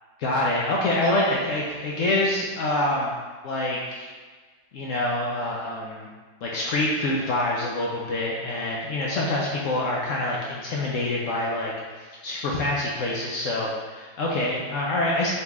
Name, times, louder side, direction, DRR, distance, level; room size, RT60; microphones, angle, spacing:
voice 1, 0.2-3.2 3.4-4.1 4.7-6.1 6.4-15.3, left 1 dB, 65° left, -4 dB, 0.8 m, -26 dB
4.1 x 2.9 x 3.5 m, 1.4 s
omnidirectional pair, 1.8 m